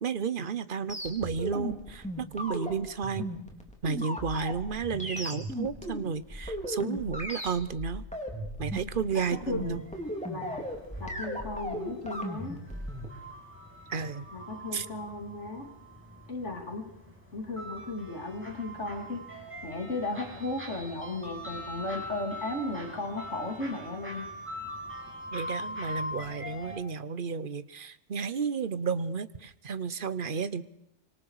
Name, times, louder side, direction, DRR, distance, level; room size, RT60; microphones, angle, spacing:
voice 1, 0.0-3.3 3.8-8.0 8.6-9.8 13.9-14.2 14.7-14.9 25.3-30.6, right 5 dB, 50° right, 14 dB, 1.2 m, -32 dB
sound 1, 0.9-13.1, equal, 5° left, 4.0 m, -36 dB
voice 2, 9.1-9.6 10.3-10.6 11.0-12.6 14.3-15.7 16.3-16.9 17.3-24.3, left 2 dB, 85° left, 4 dB, 3.4 m, -35 dB
sound 2, 9.2-26.8, equal, 10° right, 6.1 m, -43 dB
25.5 x 25.5 x 4.9 m, 0.84 s
omnidirectional pair, 1.2 m